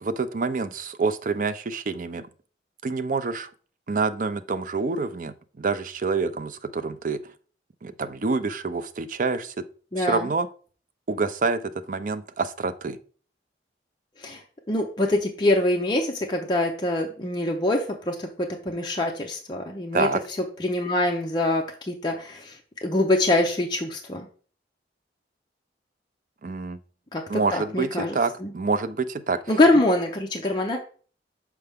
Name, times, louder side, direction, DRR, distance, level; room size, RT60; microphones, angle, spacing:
voice 1, 0.0-2.3 2.8-3.5 3.9-7.2 7.8-9.5 10.0-10.5 11.1-11.6 11.9-13.0 19.9-20.2 26.4-26.8 27.3-29.4, right 4 dB, 50° right, 10 dB, 0.5 m, -27 dB
voice 2, 9.9-10.3 14.2-14.4 14.7-20.1 20.6-24.3 27.1-28.5 29.5-30.8, left 1 dB, 25° left, 0 dB, 0.6 m, -24 dB
6.7 x 4.6 x 3.5 m, 0.41 s
head